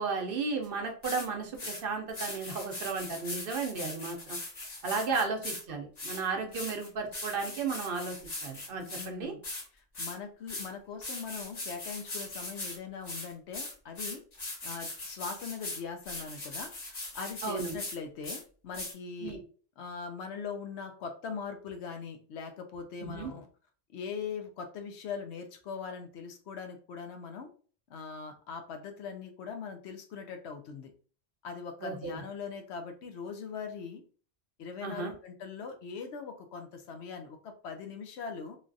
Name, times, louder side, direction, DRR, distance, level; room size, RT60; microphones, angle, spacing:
voice 1, 0.0-4.4 4.8-8.2 8.4-9.3 17.4-17.8 19.2-19.4 23.0-23.3 31.8-32.2 34.8-35.1, right 4 dB, 65° right, 3 dB, 0.8 m, -34 dB
sound 1, 0.6-0.7 1.0-1.3 1.5-1.8 2.1-5.6 6.0-9.1 9.4-9.6 9.9-10.1 10.5-10.7 11.0-12.8 13.0-18.0 18.2-18.4 18.7-18.9, left 2 dB, 45° left, 0.9 m, -40 dB
voice 2, 9.0-9.4 9.7-14.2 14.6-19.4 19.8-23.5 23.9-27.5 27.9-30.9 31.4-34.0 34.6-38.6, left 5 dB, 85° left, 5 dB, 0.9 m, -41 dB
3.2 x 2.4 x 2.5 m, 0.41 s
omnidirectional pair, 1.1 m